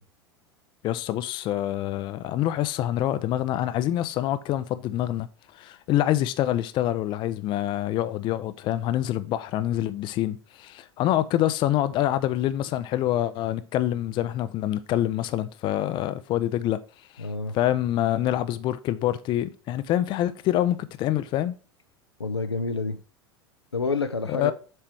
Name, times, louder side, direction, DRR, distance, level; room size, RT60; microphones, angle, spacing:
voice 1, 0.8-5.3 5.5-16.8 17.1-17.3 17.5-21.5 24.3-24.5, left 13 dB, 35° left, 0.5 m, -26 dB
voice 2, 17.2-17.6 22.2-23.0 23.7-24.5, left 3 dB, 90° left, 0.6 m, -28 dB
7.6 x 3.3 x 4.5 m
figure-of-eight pair, 80°, 13 cm